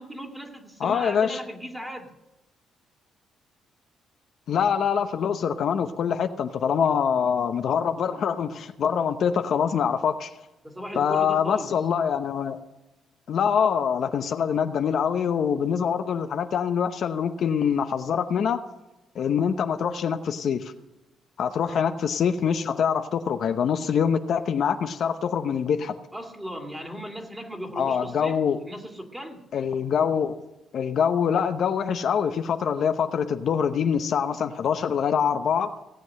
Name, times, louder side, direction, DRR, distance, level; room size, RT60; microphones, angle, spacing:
voice 1, 0.0-2.1 10.6-11.7 21.7-21.9 26.1-29.4, equal, 10° right, 3 dB, 2.3 m, -37 dB
voice 2, 0.8-1.4 4.5-10.3 10.9-12.6 13.3-18.6 19.1-20.7 21.4-25.9 27.8-28.6 29.5-30.4 30.7-35.7, left 7 dB, 65° left, 7 dB, 0.8 m, -24 dB
17.5 x 7.9 x 6.4 m, 1.0 s
cardioid pair, 90°, 0 cm